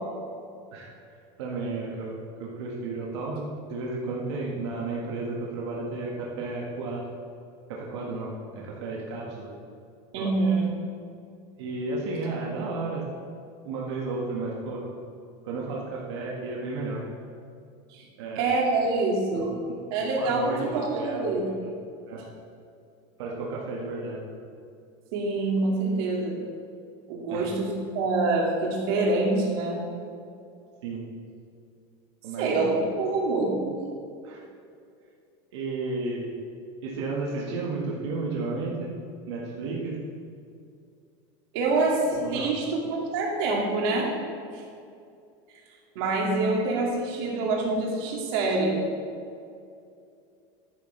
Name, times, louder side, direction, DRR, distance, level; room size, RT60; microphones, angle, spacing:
voice 1, 1.4-7.1 7.7-9.5 10.2-10.3 11.6-13.0 13.6-14.8 15.4-17.1 18.2-18.5 19.3-19.5 20.2-21.3 22.1-22.2 23.2-24.2 27.3-27.5 30.8-31.0 32.2-32.8 34.2-34.4 35.5-36.3 36.8-38.9 39.3-40.0 42.1-42.5, right 3 dB, 85° right, -4 dB, 1.9 m, -33 dB
voice 2, 10.1-10.7 17.9-18.1 18.4-19.5 19.9-21.5 25.1-26.4 27.1-29.8 32.4-33.7 41.5-44.1 45.9-48.8, right 3 dB, 60° right, -2 dB, 2.4 m, -26 dB
11.5 x 10.0 x 3.4 m, 2.4 s
supercardioid pair, 165°, 14 cm